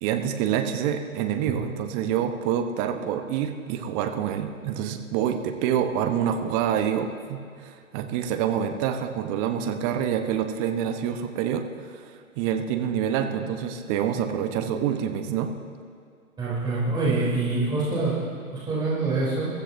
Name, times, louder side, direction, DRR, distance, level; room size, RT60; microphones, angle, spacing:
voice 1, 0.0-15.5, right 9 dB, 25° right, 7 dB, 1.0 m, -27 dB
voice 2, 16.4-18.2 18.6-19.5, right 3 dB, 10° right, -8 dB, 3.3 m, -25 dB
22.5 x 14.5 x 2.7 m, 2.2 s
figure-of-eight pair, 125°, 42 cm